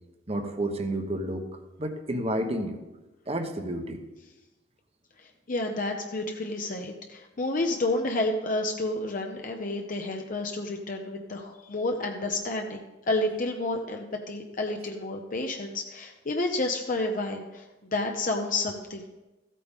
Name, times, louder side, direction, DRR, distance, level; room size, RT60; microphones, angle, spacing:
voice 1, 0.3-1.4 1.8-2.8 3.3-4.0, right 1 dB, 35° right, 6 dB, 1.0 m, -30 dB
voice 2, 5.2-12.8 13.1-19.0, left 2 dB, 45° left, 3 dB, 0.7 m, -30 dB
14.5 x 8.5 x 3.6 m, 1.1 s
head